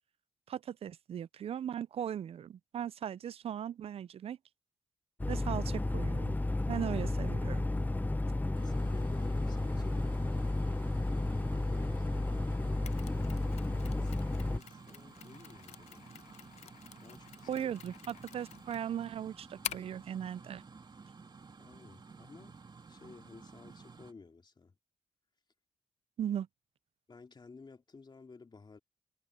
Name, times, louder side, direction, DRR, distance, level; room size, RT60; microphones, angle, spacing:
voice 1, 0.5-4.4 5.3-6.4 6.7-7.7 17.5-20.6 26.2-26.5, right 9 dB, 65° right, 0.4 m, -38 dB
sound 1, 5.2-14.6, left 2 dB, 15° left, 0.8 m, -32 dB
voice 2, 8.5-10.6 11.5-16.0 17.0-17.7 21.6-22.6 22.9-24.8 27.1-28.8, left 4 dB, 45° left, 3.0 m, -54 dB
sound 2, 8.5-24.1, right 4 dB, 45° right, 2.3 m, -54 dB
Mechanisms, 12.9-20.0, left 10 dB, 80° left, 0.6 m, -47 dB
cardioid pair, 55°, 11 cm